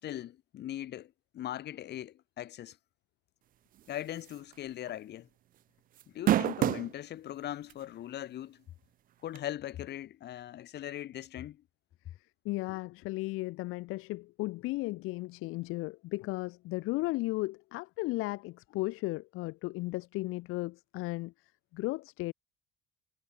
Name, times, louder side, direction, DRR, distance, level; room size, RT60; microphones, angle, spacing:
voice 1, 0.0-2.8 3.9-5.3 6.1-8.6 9.2-11.6, left 12 dB, 55° left, 5.4 m, -40 dB
sound 1, 4.3-4.5 4.9-5.0 6.0-6.9 7.7-7.8 9.4-9.5, right 12 dB, 40° right, 0.5 m, -26 dB
voice 2, 12.5-21.3 21.7-22.3, left 21 dB, 80° left, 1.9 m, -35 dB
cardioid pair, 145°, 21 cm